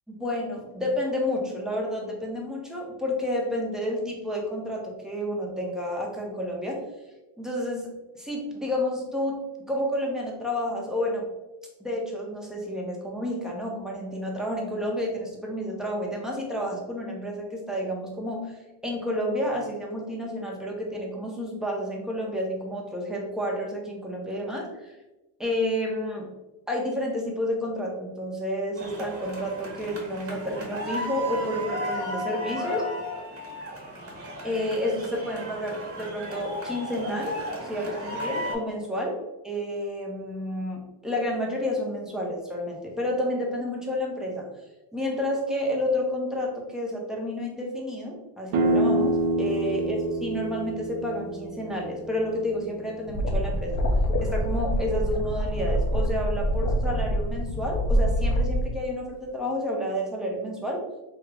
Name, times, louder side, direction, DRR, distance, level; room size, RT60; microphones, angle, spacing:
voice 1, 0.1-6.8 7.4-7.9 8.1-9.4 9.6-11.2 11.8-18.5 18.8-24.9 25.4-26.3 26.7-32.8 34.4-39.1 39.4-44.5 44.9-53.8 54.2-60.8, left 1 dB, ahead, -2 dB, 0.6 m, -30 dB
sound 1, 28.8-38.6, equal, 30° right, 1.1 m, -34 dB
sound 2, 48.5-54.1, right 2 dB, 45° right, 0.7 m, -28 dB
sound 3, 53.1-58.6, equal, 40° left, 0.6 m, -25 dB
3.5 x 2.1 x 3.3 m, 1.1 s
supercardioid pair, 105°, 45 cm